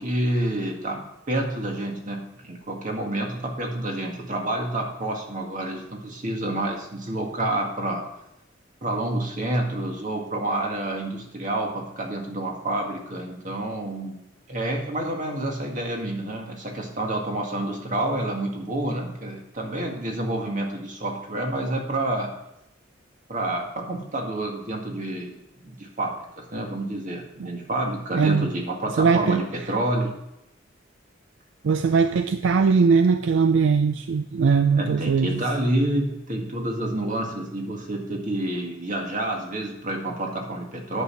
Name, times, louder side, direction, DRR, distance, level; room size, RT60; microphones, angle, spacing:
voice 1, 0.0-8.0 8.8-14.1 14.5-22.3 23.3-30.1 34.8-41.0, right 1 dB, 40° right, 1 dB, 1.9 m, -28 dB
voice 2, 28.1-28.5 29.0-29.4 31.6-35.4, right 5 dB, 70° right, 10 dB, 0.4 m, -20 dB
9.5 x 6.6 x 5.6 m, 0.85 s
head